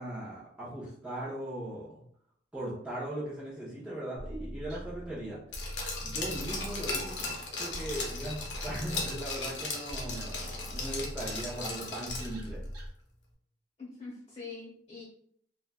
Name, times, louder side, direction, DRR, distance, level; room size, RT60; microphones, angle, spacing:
voice 1, 0.0-2.0 2.5-5.4 6.0-12.6, right 1 dB, 5° right, -9 dB, 0.5 m, -39 dB
sound 1, 4.2-12.9, equal, 60° right, 0.7 m, -42 dB
Glass, 5.5-12.5 12.8-12.9, left 3 dB, 70° left, 0.6 m, -37 dB
voice 2, 13.8-15.0, left 4 dB, 35° left, -5 dB, 1.2 m, -44 dB
2.9 x 2.2 x 2.2 m, 0.66 s
head